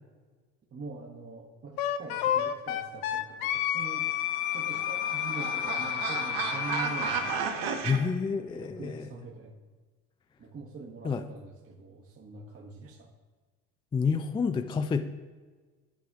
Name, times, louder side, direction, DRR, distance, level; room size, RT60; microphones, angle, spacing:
voice 1, 0.7-4.1 4.5-7.2 8.5-9.5 10.4-13.1, right 3 dB, 35° right, -2 dB, 1.2 m, -43 dB
Wind instrument woodwind instrument, 1.8-7.4, left 11 dB, 75° left, 0.7 m, -31 dB
sound 1, 4.1-8.0, right 6 dB, 65° right, 1.3 m, -33 dB
voice 2, 7.8-9.1 11.0-11.3 13.9-15.0, left 5 dB, 15° left, 9 dB, 0.3 m, -29 dB
11.5 x 6.1 x 2.5 m, 1.4 s
hypercardioid pair, 65°, 42 cm